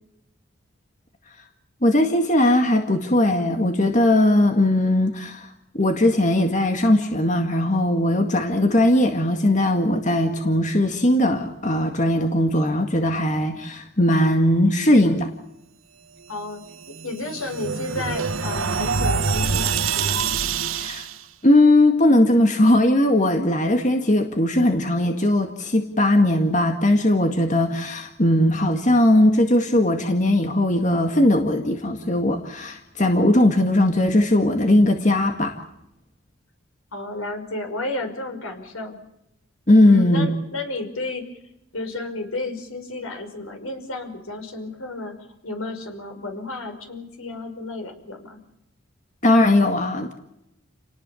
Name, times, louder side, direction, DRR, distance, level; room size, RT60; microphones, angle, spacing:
voice 1, 1.8-5.5 5.7-15.3 20.7-21.0 21.4-35.5 39.7-40.3 49.2-50.1, left 1 dB, 35° left, 5 dB, 1.9 m, -19 dB
voice 2, 16.3-16.6 16.9-20.2 36.9-39.0 39.9-41.4 41.7-45.1 45.4-48.4, left 2 dB, 85° left, 5 dB, 5.6 m, -32 dB
sound 1, 16.7-21.2, right 5 dB, 75° right, 1.4 m, -25 dB
29.5 x 19.0 x 7.1 m, 0.85 s
head